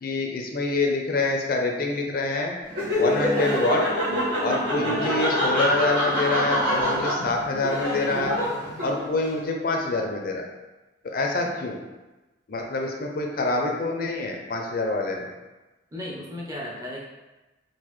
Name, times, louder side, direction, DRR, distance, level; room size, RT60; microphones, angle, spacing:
voice 1, 0.0-2.5 3.0-3.8 4.4-8.4 8.8-10.4 11.0-11.8 12.5-15.3, left 2 dB, 50° left, 2 dB, 0.4 m, -26 dB
Laughter, 2.7-9.2, equal, 85° right, 1.3 m, -25 dB
voice 2, 4.7-5.1 15.9-17.1, left 1 dB, 20° right, -3 dB, 0.6 m, -35 dB
3.8 x 2.5 x 3.0 m, 1.1 s
head